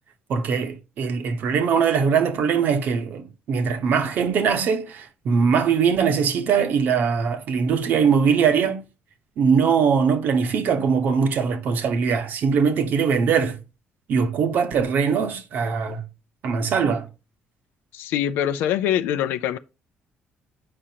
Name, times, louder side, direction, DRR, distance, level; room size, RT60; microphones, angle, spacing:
voice 1, 0.3-8.8 9.4-13.6 14.1-16.0 16.4-17.1, right 6 dB, 60° right, 1.0 m, -21 dB
voice 2, 17.9-19.6, left 10 dB, 90° left, 0.4 m, -24 dB
8.7 x 5.0 x 2.8 m
cardioid pair, 130°, 4 cm